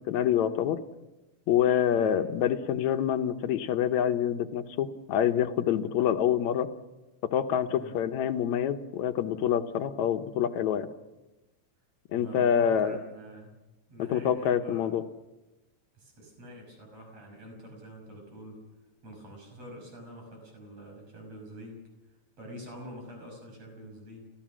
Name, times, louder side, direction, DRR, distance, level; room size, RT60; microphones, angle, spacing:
voice 1, 0.1-0.8 1.5-6.7 7.2-10.9 12.1-13.0 14.0-15.1, left 9 dB, 70° left, 8 dB, 2.1 m, -26 dB
voice 2, 12.1-13.5 13.9-14.9 15.9-18.6 19.0-21.9 22.4-24.3, right 1 dB, 55° right, 2 dB, 7.2 m, -46 dB
29.5 x 16.0 x 6.2 m, 1.0 s
omnidirectional pair, 3.6 m